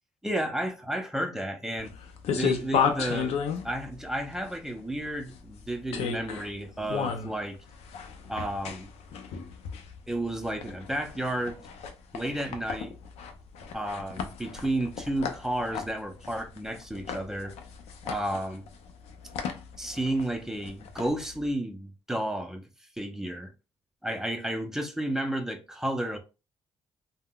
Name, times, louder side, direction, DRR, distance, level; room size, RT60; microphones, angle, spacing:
voice 1, 0.2-1.9 2.3-3.4 3.6-7.6 8.3-8.9 10.1-11.6 12.1-13.0 13.7-17.5 18.0-18.7 19.8-22.7 23.0-23.5 24.0-26.2, right 1 dB, 5° right, 0.6 m, -32 dB
sound 1, 1.8-21.5, left 6 dB, 90° left, 0.5 m, -34 dB
3.5 x 2.1 x 2.3 m
cardioid pair, 85°, 10 cm